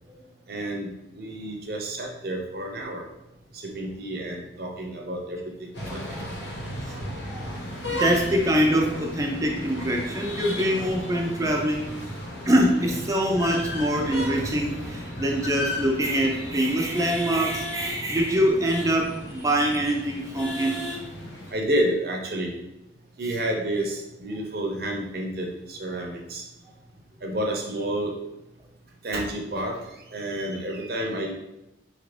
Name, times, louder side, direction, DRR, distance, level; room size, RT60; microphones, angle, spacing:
voice 1, 0.5-3.0 3.5-6.2 21.5-22.5 23.2-26.4 27.2-28.1 29.0-31.3, right 1 dB, 55° right, 0 dB, 0.7 m, -30 dB
sound 1, 5.7-21.5, left 1 dB, 80° left, 1.1 m, -35 dB
voice 2, 5.8-6.5 6.9-7.6 7.9-12.1 12.4-21.0, equal, 20° right, 1 dB, 0.5 m, -24 dB
4.3 x 2.5 x 3.2 m, 0.94 s
head